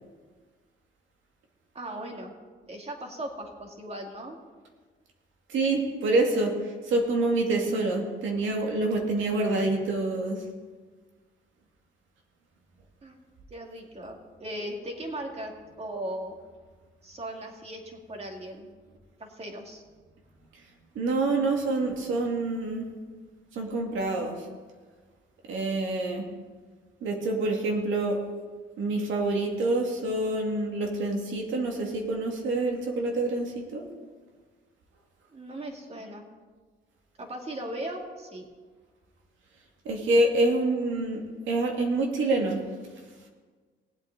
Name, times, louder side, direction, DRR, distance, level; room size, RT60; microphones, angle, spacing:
voice 1, 1.7-2.3 2.7-4.4 13.0-13.2 13.5-15.5 15.8-16.4 17.0-18.7 19.2-19.8 35.3-36.2 37.2-38.5, right 1 dB, 30° right, 2 dB, 2.3 m, -38 dB
voice 2, 5.5-10.4 21.0-22.9 23.5-24.4 25.5-26.3 27.0-28.2 28.8-33.8 39.8-41.2 41.5-42.6, right 2 dB, 80° right, 1 dB, 2.2 m, -26 dB
19.0 x 8.2 x 4.0 m, 1.4 s
cardioid pair, 90°, 20 cm